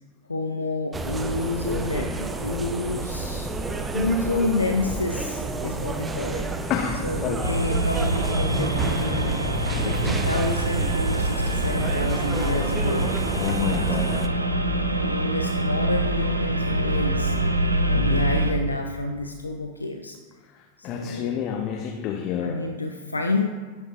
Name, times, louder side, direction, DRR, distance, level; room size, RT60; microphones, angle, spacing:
voice 1, 0.3-3.5 3.9-6.5 7.0-9.4 9.8-13.1 14.0-14.4 14.9-17.4 17.8-20.2 20.8-21.4 22.4-23.5, left 2 dB, 80° left, 4 dB, 0.4 m, -29 dB
sound 1, 0.9-14.3, right 2 dB, 15° right, 0.5 m, -30 dB
voice 2, 6.7-7.4 13.4-14.1 18.0-18.2 20.5-22.6, left 8 dB, 35° left, 2 dB, 0.7 m, -29 dB
sound 2, 7.4-18.5, right 1 dB, 85° right, 0.5 m, -25 dB
10.0 x 6.1 x 2.4 m, 1.4 s
figure-of-eight pair, 90°, 0 cm